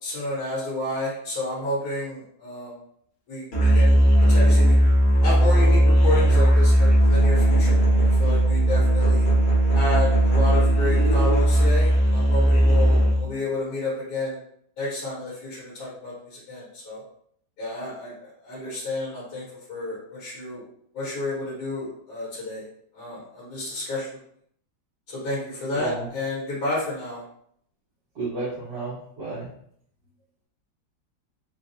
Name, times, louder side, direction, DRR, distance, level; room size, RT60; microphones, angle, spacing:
voice 1, 0.0-2.8 3.3-4.8 5.2-9.3 9.7-14.4 14.8-17.0 17.6-19.4 19.7-20.7 20.9-22.6 22.9-24.2 25.1-27.2, left 2 dB, 65° left, -7 dB, 1.6 m, -31 dB
Musical instrument, 3.5-13.3, right 1 dB, 45° left, 1.2 m, -18 dB
voice 2, 25.7-26.1 28.2-29.5, right 3 dB, 80° right, -10 dB, 1.7 m, -32 dB
4.0 x 2.3 x 2.6 m, 0.66 s
omnidirectional pair, 1.8 m